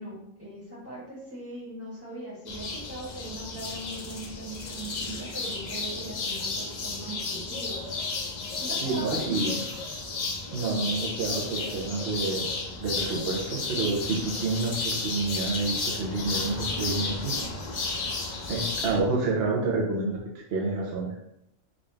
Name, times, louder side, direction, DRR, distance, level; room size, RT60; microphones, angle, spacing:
voice 1, 0.0-7.8 8.6-9.4, right 1 dB, 10° right, -7 dB, 1.3 m, -40 dB
sound 1, 2.5-19.0, left 3 dB, 70° left, 0.4 m, -33 dB
voice 2, 8.8-9.6 10.5-12.5 12.8-17.3 18.5-20.2 20.5-21.2, right 3 dB, 55° right, -3 dB, 0.8 m, -28 dB
3.8 x 2.5 x 3.3 m, 0.77 s
omnidirectional pair, 1.4 m